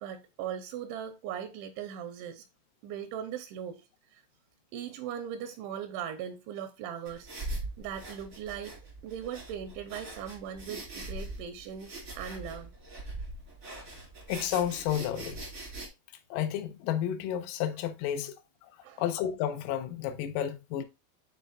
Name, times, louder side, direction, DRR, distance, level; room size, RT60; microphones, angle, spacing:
voice 1, 0.0-2.4 2.8-3.8 4.1-4.2 4.7-7.3 7.8-8.8 9.0-12.7 18.8-19.0, right 9 dB, 85° right, 2.8 m, -39 dB
sound 1, 7.0-15.9, right 1 dB, 55° right, 0.9 m, -42 dB
voice 2, 14.3-15.4 16.3-18.3 18.6-18.7 19.0-20.8, left 10 dB, 85° left, 3.5 m, -31 dB
12.0 x 4.1 x 2.4 m
omnidirectional pair, 5.8 m